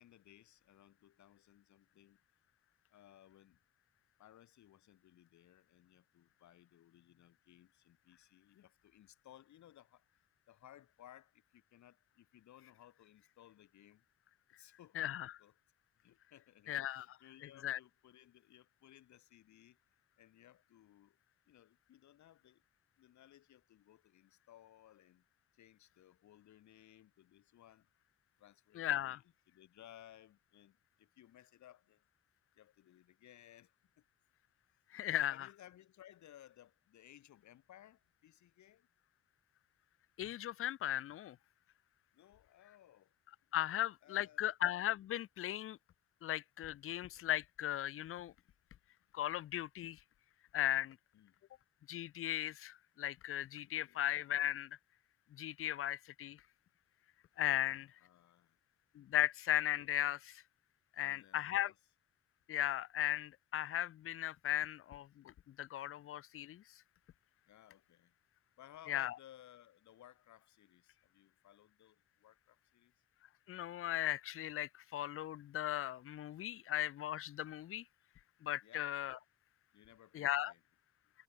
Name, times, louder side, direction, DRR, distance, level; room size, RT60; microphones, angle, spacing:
voice 1, 0.0-2.2 2.9-3.6 4.2-10.0 10.5-14.0 14.6-15.5 16.0-19.8 20.2-21.2 21.5-22.6 23.0-25.2 25.5-27.9 28.4-32.0 32.6-34.0 35.3-38.9 42.1-43.1 43.7-44.5 51.1-51.3 53.6-54.0 57.5-58.6 61.0-61.8 67.5-68.1 68.6-72.9 76.6-76.7 78.6-78.9 79.7-80.6, left 12 dB, 70° left, 1.8 m, -61 dB
voice 2, 15.0-15.3 16.7-17.1 17.6-17.8 28.8-29.2 34.9-35.5 40.2-41.4 43.5-45.8 46.2-48.3 49.1-50.0 50.5-51.0 51.9-54.7 55.3-56.4 57.4-57.9 58.9-60.4 61.0-61.7 62.5-66.6 68.9-69.1 73.5-77.8 78.4-79.2 80.1-80.5, left 12 dB, 45° left, 0.5 m, -37 dB
cardioid pair, 90°, 30 cm